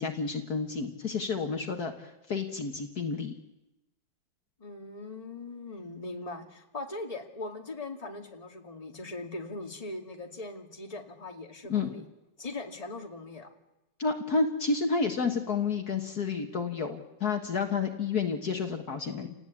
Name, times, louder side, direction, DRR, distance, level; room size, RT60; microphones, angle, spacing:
voice 1, 0.0-3.3 11.7-11.9 14.0-19.3, left 4 dB, 55° left, 5 dB, 2.1 m, -30 dB
voice 2, 4.6-12.0 12.4-13.5, left 2 dB, 20° left, 3 dB, 2.3 m, -40 dB
29.5 x 19.0 x 8.5 m, 0.98 s
omnidirectional pair, 2.0 m